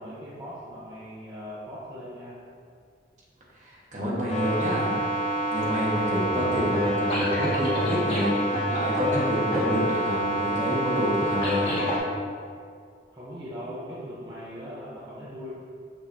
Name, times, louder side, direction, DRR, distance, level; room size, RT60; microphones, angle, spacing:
voice 1, 0.0-2.4 13.1-15.5, equal, 25° right, -9 dB, 0.9 m, -39 dB
voice 2, 3.6-4.9 5.5-8.4 8.7-11.8, equal, 40° right, -6 dB, 1.4 m, -28 dB
sound 1, 4.3-12.0, equal, 30° left, 1.4 m, -27 dB
6.5 x 6.0 x 2.8 m, 2.2 s
head